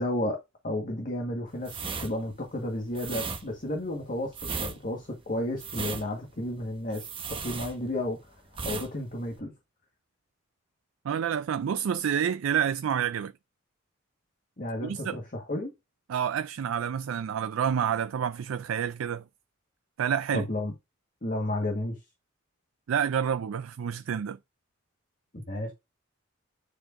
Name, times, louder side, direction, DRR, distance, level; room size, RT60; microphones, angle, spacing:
voice 1, 0.0-8.3 8.6-9.5 14.6-15.7 20.3-20.7 21.2-22.0 25.3-25.7, left 1 dB, 40° left, 1.5 m, -32 dB
sound 1, 1.6-8.2 8.5-8.9 9.2-9.4, right 5 dB, 25° right, 1.1 m, -36 dB
voice 2, 11.0-13.3 14.8-15.2 16.1-19.2 20.0-20.5 22.9-24.4, right 8 dB, 90° right, 0.4 m, -28 dB
9.9 x 4.5 x 2.6 m
head